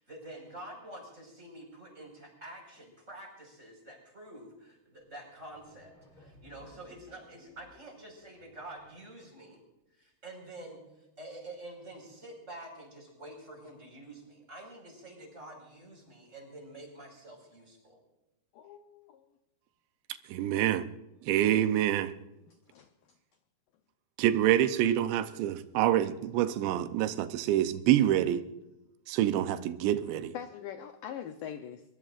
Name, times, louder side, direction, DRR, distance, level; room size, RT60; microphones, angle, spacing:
voice 1, 0.0-9.6 10.0-18.0, right 1 dB, 15° right, 1 dB, 5.0 m, -48 dB
sound 1, 5.0-5.1 5.3-9.1, left 3 dB, 30° left, 6.7 m, -59 dB
voice 2, 18.5-19.3 22.5-22.9 30.3-31.8, left 9 dB, 85° left, 7 dB, 1.9 m, -43 dB
voice 3, 20.3-20.9 21.2-22.1 24.2-28.4 29.1-30.3, right 12 dB, 85° right, 11 dB, 3.0 m, -26 dB
22.5 x 21.5 x 2.5 m, 0.96 s
omnidirectional pair, 5.0 m